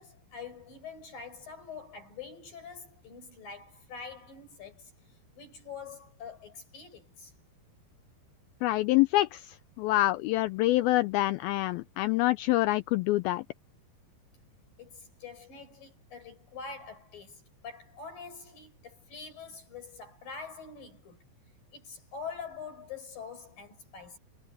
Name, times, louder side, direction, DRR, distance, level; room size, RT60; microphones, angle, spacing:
voice 1, 0.0-4.9 5.3-7.3 14.8-21.2 21.7-24.2, left 5 dB, 55° left, 6.8 m, -45 dB
voice 2, 8.6-13.4, left 17 dB, 85° left, 2.1 m, -26 dB
omnidirectional pair, 4.9 m